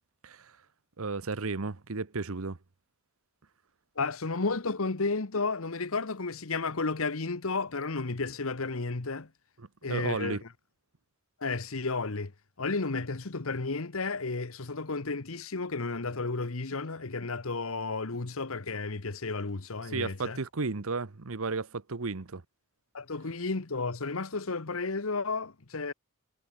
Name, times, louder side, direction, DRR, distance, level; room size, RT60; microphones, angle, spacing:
voice 1, 1.0-2.6 9.8-10.4 19.9-22.4, right 4 dB, 70° right, 1.0 m, -33 dB
voice 2, 4.0-9.3 9.8-10.5 11.4-12.3 12.6-20.4 22.9-25.9, left 3 dB, 70° left, 1.2 m, -32 dB
head